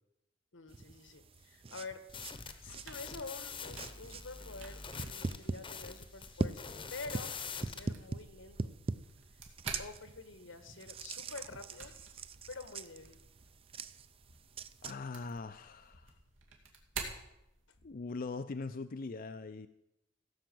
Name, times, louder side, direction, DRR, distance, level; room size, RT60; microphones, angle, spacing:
voice 1, 0.5-2.0 2.6-7.3 7.6-8.7 9.8-11.9 12.5-13.2, left 3 dB, 85° left, 10 dB, 1.4 m, -47 dB
sound 1, 0.7-14.9, right 3 dB, 30° right, 0.5 m, -43 dB
sound 2, 2.1-7.9, left 5 dB, 25° left, 0.8 m, -45 dB
sound 3, 2.1-18.0, right 4 dB, 90° right, 2.6 m, -51 dB
voice 2, 14.8-16.2 17.8-19.7, left 3 dB, 50° left, 9 dB, 0.5 m, -41 dB
16.5 x 6.3 x 7.8 m, 0.86 s
head